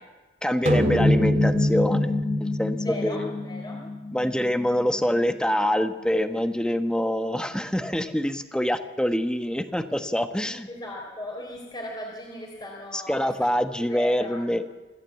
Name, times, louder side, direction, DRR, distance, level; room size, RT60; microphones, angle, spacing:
voice 1, 0.4-3.3 4.1-10.7 12.9-14.6, equal, 5° left, 8 dB, 1.2 m, -25 dB
sound 1, 0.7-5.3, left 1 dB, 45° right, 2.4 m, -25 dB
voice 2, 2.8-3.8 10.7-13.5 13.8-14.4, left 1 dB, 25° left, 0 dB, 3.7 m, -37 dB
26.5 x 15.0 x 8.4 m, 1.2 s
head